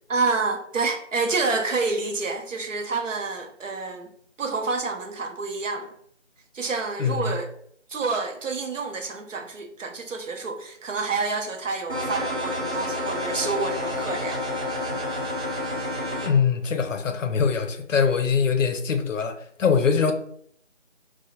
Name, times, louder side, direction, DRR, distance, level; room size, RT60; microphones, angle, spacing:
voice 1, 0.1-4.1 4.4-5.9 6.5-7.5 7.9-14.4, right 4 dB, 90° right, 0.6 m, -28 dB
voice 2, 7.0-7.4 16.2-20.1, left 6 dB, 85° left, 0.5 m, -23 dB
sound 1, 11.9-16.3, left 1 dB, 55° right, 1.3 m, -29 dB
2.7 x 2.1 x 2.4 m
figure-of-eight pair, 175°, 37 cm